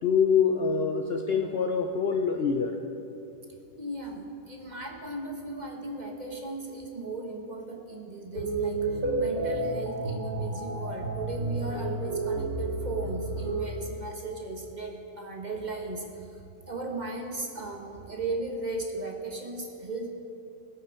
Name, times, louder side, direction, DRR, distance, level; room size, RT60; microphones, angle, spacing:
voice 1, 0.0-2.8, left 6 dB, 55° left, 4 dB, 0.7 m, -25 dB
voice 2, 3.8-20.1, right 2 dB, 30° right, 2 dB, 1.1 m, -36 dB
sound 1, 8.4-13.7, right 2 dB, 80° right, 2.3 m, -31 dB
18.0 x 8.0 x 5.6 m, 2.7 s
omnidirectional pair, 1.6 m